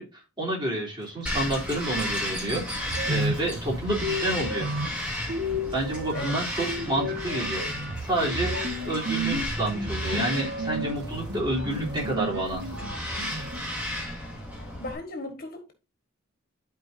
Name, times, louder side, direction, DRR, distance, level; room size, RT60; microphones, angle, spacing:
voice 1, 0.0-4.7 5.7-7.7 8.0-8.5 8.8-12.8, right 1 dB, 20° right, 3.3 m, -29 dB
Bird vocalization bird call bird song, 1.2-14.9, left 1 dB, 5° right, 2.9 m, -34 dB
sound 1, 2.0-2.1 2.4-13.6, equal, 55° right, 1.5 m, -33 dB
voice 2, 14.6-15.7, left 2 dB, 45° left, 1.6 m, -37 dB
12.0 x 4.7 x 2.7 m
head